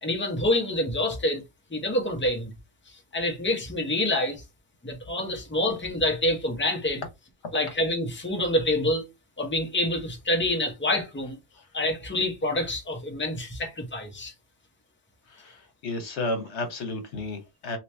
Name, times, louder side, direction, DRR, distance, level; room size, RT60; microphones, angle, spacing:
voice 1, 0.0-1.4 1.7-2.5 2.9-4.4 4.8-7.0 7.5-9.0 9.4-11.4 11.7-14.3, left 1 dB, 10° left, 0.7 m, -27 dB
voice 2, 15.3-17.8, left 2 dB, 70° left, 1.2 m, -33 dB
2.9 x 2.9 x 3.3 m
omnidirectional pair, 1.2 m